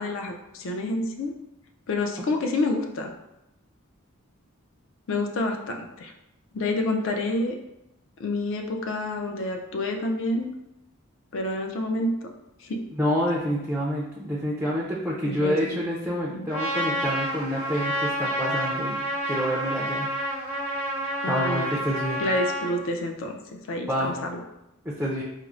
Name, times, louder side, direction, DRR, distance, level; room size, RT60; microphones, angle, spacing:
voice 1, 0.0-1.3 1.9-3.1 5.1-6.1 6.5-7.5 8.2-10.5 11.3-12.3 12.6-12.8 15.3-15.8 16.3-16.5 21.2-21.8 22.2-24.4, left 2 dB, 65° left, 3 dB, 0.4 m, -28 dB
voice 2, 12.9-20.1 21.3-22.2 23.9-24.2 24.8-25.2, equal, 5° right, -5 dB, 0.4 m, -28 dB
Trumpet, 16.5-22.7, right 1 dB, 35° left, 0.7 m, -29 dB
4.3 x 2.0 x 2.4 m, 0.88 s
head